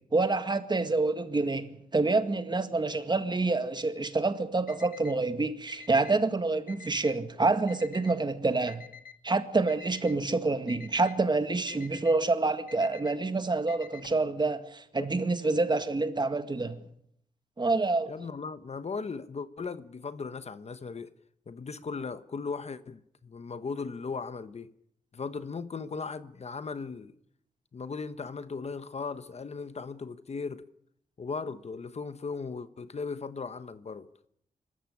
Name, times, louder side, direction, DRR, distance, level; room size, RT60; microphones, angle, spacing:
voice 1, 0.1-8.8 9.2-16.8 17.6-18.1, right 3 dB, 30° right, 1.9 m, -27 dB
Alarm, 4.7-5.1 5.7-6.1 6.7-7.1 7.7-8.1 8.7-9.1 9.7-10.1 10.7-11.1 11.7-12.1 12.7-13.1 13.7-14.2, left 7 dB, 70° left, 1.4 m, -48 dB
voice 2, 18.1-21.1 21.5-24.7 25.1-27.1 27.7-30.6 31.2-34.1, left 4 dB, 50° left, 1.1 m, -37 dB
25.0 x 14.0 x 9.9 m
wide cardioid pair, 110°, 15 cm